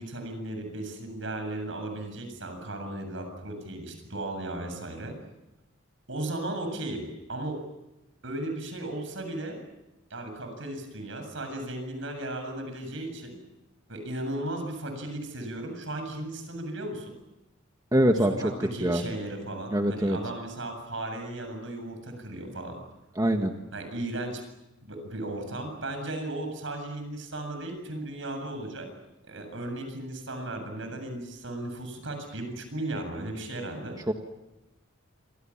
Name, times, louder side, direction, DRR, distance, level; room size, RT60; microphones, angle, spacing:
voice 1, 0.0-5.1 6.1-7.6 8.2-9.6 10.1-13.4 13.9-17.2 18.4-22.8 23.7-24.4 24.8-28.9 29.2-34.0, right 1 dB, 70° right, 6 dB, 7.6 m, -36 dB
voice 2, 17.9-18.3 18.8-19.0 19.7-20.2 23.2-23.5 34.1-34.2, right 1 dB, 20° right, 4 dB, 1.6 m, -23 dB
28.0 x 26.0 x 7.3 m, 0.96 s
head